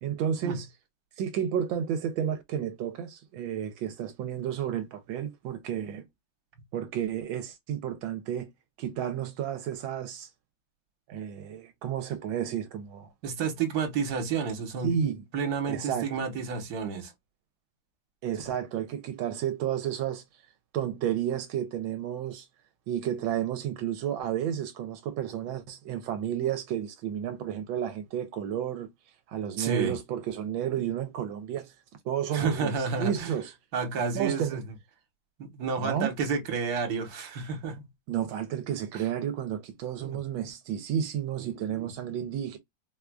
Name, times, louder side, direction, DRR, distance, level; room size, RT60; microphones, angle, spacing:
voice 1, 0.0-0.7 1.2-6.1 6.7-8.5 8.8-10.3 11.1-13.1 14.8-15.2 15.7-16.1 18.2-20.2 20.7-22.5 22.9-28.9 29.3-31.7 32.0-33.5 34.1-34.6 35.8-36.1 38.1-42.6, right 9 dB, 80° right, 1.3 m, -31 dB
voice 2, 13.2-14.9 15.3-17.1 29.6-30.0 32.3-33.3 33.7-34.6 35.4-37.9 38.9-39.0 40.0-40.2 41.4-41.9, right 5 dB, 55° right, 1.4 m, -31 dB
4.7 x 2.4 x 2.2 m
omnidirectional pair, 2.2 m